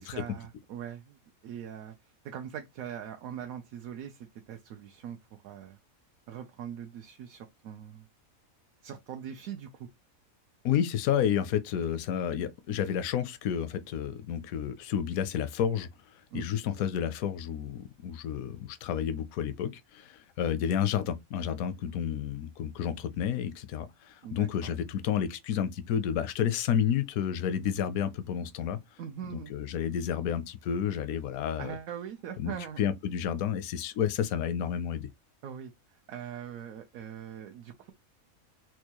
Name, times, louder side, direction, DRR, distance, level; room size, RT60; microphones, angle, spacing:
voice 1, 0.0-1.9 2.2-5.2 5.4-5.8 6.3-8.1 8.8-9.9 16.3-16.5 24.2-24.7 29.0-29.7 31.6-32.8 35.4-37.9, right 9 dB, 80° right, 1.0 m, -42 dB
voice 2, 10.6-15.9 16.3-28.8 29.5-31.7 32.4-35.1, left 9 dB, 80° left, 1.0 m, -30 dB
4.4 x 2.3 x 2.9 m
omnidirectional pair, 1.5 m